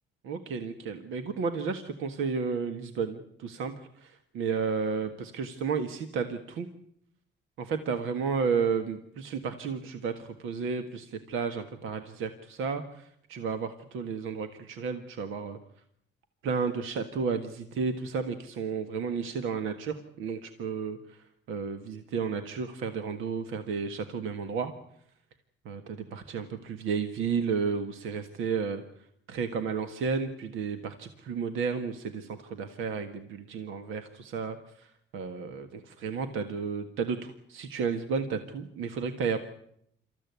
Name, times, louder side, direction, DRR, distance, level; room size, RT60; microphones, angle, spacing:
voice 1, 0.2-6.7 7.6-15.6 16.4-24.7 25.6-28.8 29.3-39.4, right 5 dB, 90° right, 8 dB, 1.7 m, -32 dB
27.0 x 14.5 x 9.5 m, 0.72 s
cardioid pair, 90°, 20 cm